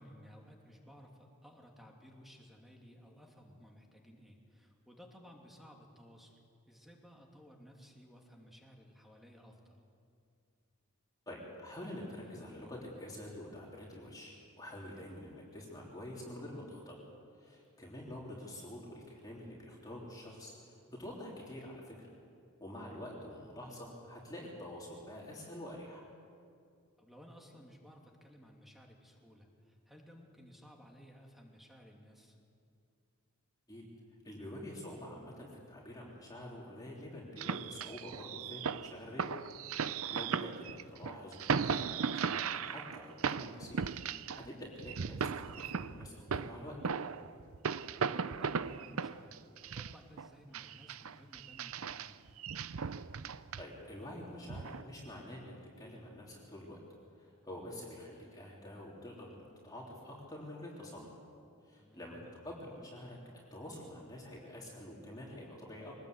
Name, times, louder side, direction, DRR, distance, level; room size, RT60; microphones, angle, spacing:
voice 1, 0.0-6.4 6.7-9.8 27.0-32.4 48.0-52.2 61.8-62.2, equal, ahead, 0 dB, 2.8 m, -57 dB
voice 2, 11.3-17.0 17.3-22.1 22.6-26.0 33.7-33.9 34.2-39.3 40.1-43.8 44.1-46.8 53.6-56.8 57.2-61.2 61.6-62.2 62.4-63.2 63.5-65.9, left 1 dB, 15° left, -4 dB, 3.4 m, -47 dB
sound 1, 37.4-44.5 44.8-50.3 50.5-54.0 54.5-54.8, right 6 dB, 75° right, 0.6 m, -37 dB
24.0 x 20.0 x 8.3 m, 2.4 s
head